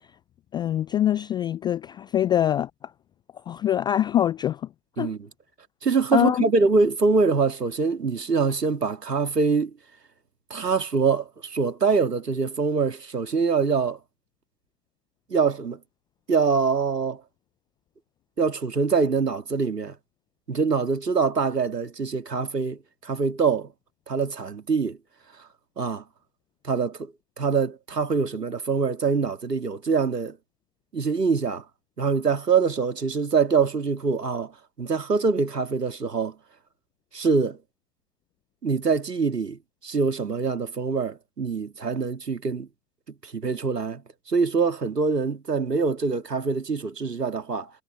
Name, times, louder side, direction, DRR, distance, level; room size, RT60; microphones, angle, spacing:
voice 1, 0.5-2.7 3.5-4.6 5.0-5.1 6.1-6.5, left 11 dB, 10° left, 0.4 m, -23 dB
voice 2, 5.8-9.7 10.5-14.0 15.3-15.8 16.3-17.2 18.4-19.9 20.5-23.7 24.1-25.0 25.8-26.0 26.6-27.1 27.4-30.4 30.9-31.6 32.0-34.5 34.8-36.3 37.1-37.6 38.6-42.7 43.2-44.0 44.3-47.7, right 5 dB, 85° right, 2.1 m, -24 dB
figure-of-eight pair, 95°, 47 cm